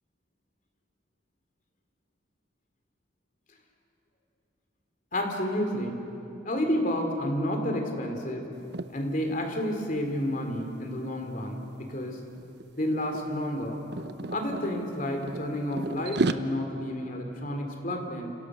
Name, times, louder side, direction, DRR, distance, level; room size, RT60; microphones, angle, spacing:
voice 1, 5.1-6.0 6.5-8.5 8.9-12.2 12.8-13.8 14.3-18.3, left 1 dB, 45° left, 4 dB, 3.7 m, -30 dB
sound 1, 8.6-8.9 9.3-9.5 9.8-11.7 12.4-12.6 12.9-14.7 15.2-16.3, right 3 dB, 60° right, 0.9 m, -32 dB
29.5 x 28.5 x 6.5 m, 2.9 s
head